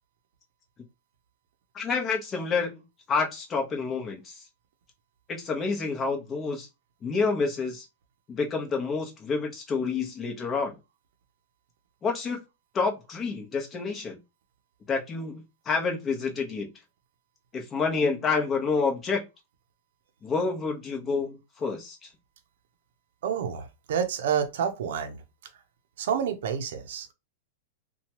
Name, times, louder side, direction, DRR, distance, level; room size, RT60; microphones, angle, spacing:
voice 1, 1.7-2.8 3.1-4.4 5.3-6.7 7.0-7.9 8.3-10.8 12.0-12.4 12.7-14.2 14.9-16.7 17.5-19.2 20.2-22.0, left 4 dB, 20° left, 0.9 m, -28 dB
voice 2, 23.2-25.2 25.5-25.6 26.0-27.1, right 8 dB, 70° right, 0.6 m, -29 dB
2.9 x 2.3 x 2.9 m
supercardioid pair, 145°, 0 cm